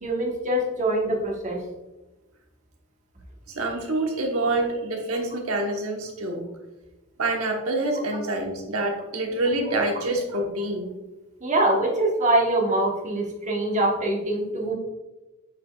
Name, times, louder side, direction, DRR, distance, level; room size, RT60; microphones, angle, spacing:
voice 1, 0.0-1.6 11.4-14.8, right 1 dB, 35° right, -1 dB, 1.3 m, -24 dB
voice 2, 3.5-6.4 7.2-10.9, right 2 dB, 75° right, 2 dB, 1.2 m, -26 dB
8.0 x 5.1 x 2.4 m, 1.1 s
head